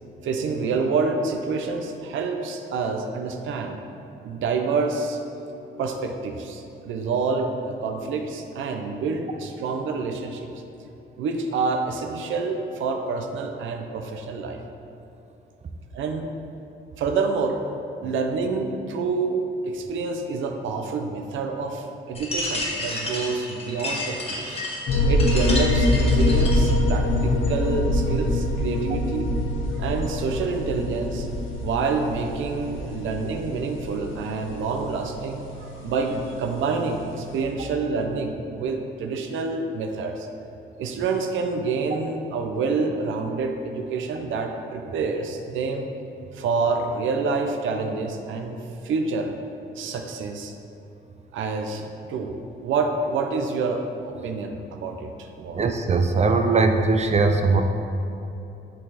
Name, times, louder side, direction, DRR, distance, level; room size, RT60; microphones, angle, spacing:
voice 1, 0.2-3.8 4.2-5.2 5.8-10.5 11.2-14.6 15.9-16.3 17.0-17.6 18.0-24.6 25.1-29.3 29.8-31.3 31.6-40.3 40.8-45.9 46.3-49.3 49.8-50.5 51.3-55.6, right 4 dB, 80° right, 5 dB, 0.7 m, -27 dB
sound 1, 22.1-26.7, left 1 dB, 30° left, 1.7 m, -31 dB
sound 2, 24.9-37.4, left 1 dB, 75° left, 1.1 m, -25 dB
voice 2, 55.5-57.6, right 3 dB, 35° right, 6 dB, 0.5 m, -20 dB
10.0 x 4.3 x 4.1 m, 2.9 s
cardioid pair, 90°, 20 cm